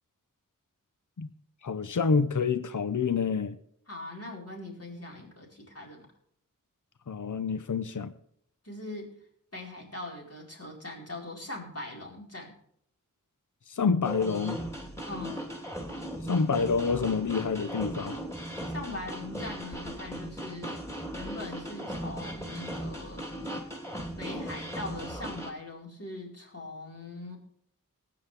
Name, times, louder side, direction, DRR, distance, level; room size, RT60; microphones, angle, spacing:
voice 1, 1.6-3.6 7.1-8.1 13.7-14.6 16.3-18.2, left 5 dB, 65° left, 12 dB, 0.8 m, -27 dB
voice 2, 3.9-6.1 8.6-9.2 9.5-12.5 15.1-15.4 18.7-20.8 21.1-23.2 24.2-27.4, left 2 dB, 45° left, -2 dB, 4.7 m, -41 dB
sound 1, 14.0-25.5, equal, 10° left, 3.4 m, -37 dB
19.0 x 9.5 x 3.4 m, 0.68 s
wide cardioid pair, 65°, 33 cm